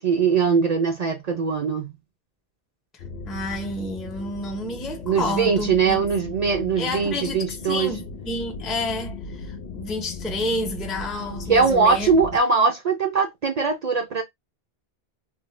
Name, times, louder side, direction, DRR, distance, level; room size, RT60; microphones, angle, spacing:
voice 1, 0.0-1.9 5.1-8.0 11.5-14.2, right 5 dB, 50° right, 0.5 m, -21 dB
sound 1, 3.0-12.4, left 4 dB, 60° left, 0.8 m, -37 dB
voice 2, 3.3-6.0 6.8-12.1, left 2 dB, ahead, 0.3 m, -30 dB
2.6 x 2.0 x 3.0 m
omnidirectional pair, 1.0 m